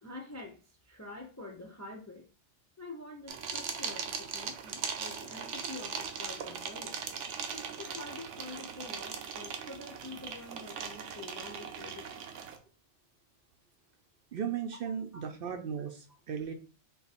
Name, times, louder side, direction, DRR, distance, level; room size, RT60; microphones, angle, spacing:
voice 1, 0.0-2.3 2.8-7.0 7.5-12.2 14.9-15.2, left 2 dB, 25° left, 1 dB, 0.3 m, -47 dB
sound 1, 3.3-12.6, right 6 dB, 90° right, 1.0 m, -39 dB
voice 2, 14.3-16.5, right 7 dB, 60° right, 6 dB, 0.6 m, -36 dB
4.0 x 2.5 x 4.1 m, 0.36 s
omnidirectional pair, 1.2 m